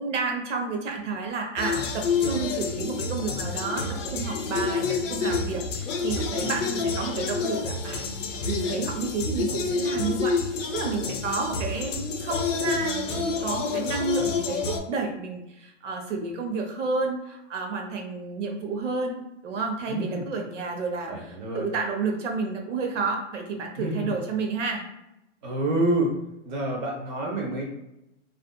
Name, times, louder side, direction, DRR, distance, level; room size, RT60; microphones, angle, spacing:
voice 1, 0.0-8.0 8.5-19.2 19.4-24.8, right 4 dB, 80° right, 2 dB, 0.8 m, -30 dB
sound 1, 1.6-14.8, left 4 dB, 90° left, 0.6 m, -28 dB
voice 2, 6.3-6.9 19.9-20.2 21.1-21.7 23.8-24.1 25.4-26.1 26.4-27.6, right 1 dB, 40° right, 0 dB, 0.8 m, -28 dB
2.6 x 2.4 x 2.2 m, 0.87 s
hypercardioid pair, 160°, 36 cm